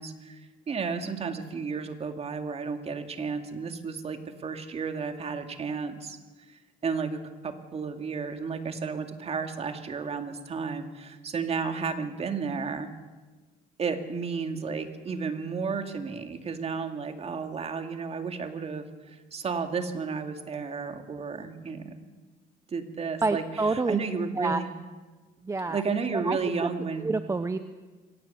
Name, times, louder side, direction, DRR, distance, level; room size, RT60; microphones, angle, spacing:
voice 1, 0.0-6.2 6.5-12.9 13.8-22.0 22.7-24.7 25.7-27.1, right 5 dB, 40° right, 6 dB, 2.3 m, -33 dB
voice 2, 23.2-24.0 24.4-24.6 25.4-25.8 26.1-26.4 27.0-27.6, right 3 dB, 20° right, 10 dB, 0.8 m, -27 dB
23.5 x 18.0 x 6.9 m, 1.3 s
cardioid pair, 110°, 17 cm